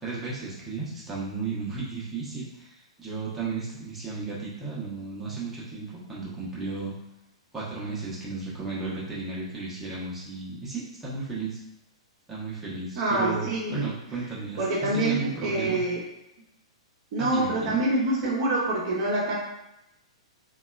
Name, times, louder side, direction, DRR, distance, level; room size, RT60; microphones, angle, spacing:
voice 1, 0.0-2.7 3.0-6.9 7.5-11.6 12.3-15.8 17.2-17.8, right 4 dB, 10° right, -8 dB, 0.8 m, -34 dB
voice 2, 13.0-13.9 14.6-16.0 17.1-19.3, right 2 dB, 40° right, -5 dB, 0.7 m, -26 dB
2.8 x 2.3 x 2.3 m, 0.89 s
figure-of-eight pair, 110°, 3 cm